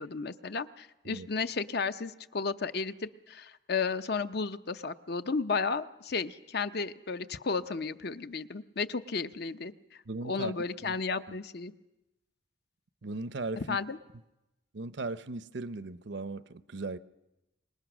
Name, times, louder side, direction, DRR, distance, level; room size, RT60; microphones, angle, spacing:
voice 1, 0.0-9.7 10.2-11.7 13.6-14.0, left 4 dB, 55° left, 0.7 m, -33 dB
voice 2, 10.1-10.9 13.0-13.8 14.7-17.0, right 3 dB, 60° right, 0.7 m, -38 dB
25.0 x 20.5 x 6.2 m
head